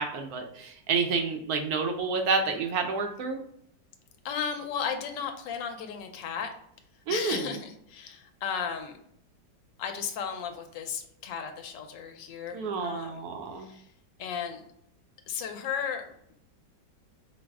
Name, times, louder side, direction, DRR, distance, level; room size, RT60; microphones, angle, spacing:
voice 1, 0.0-3.4 7.1-7.6 12.5-13.7, right 4 dB, 70° right, 4 dB, 0.9 m, -29 dB
voice 2, 4.2-6.5 7.1-9.0 9.8-13.2 13.6-13.9 14.2-14.7 15.3-16.3, left 7 dB, 75° left, 5 dB, 1.3 m, -35 dB
4.8 x 2.0 x 3.4 m, 0.71 s
omnidirectional pair, 2.1 m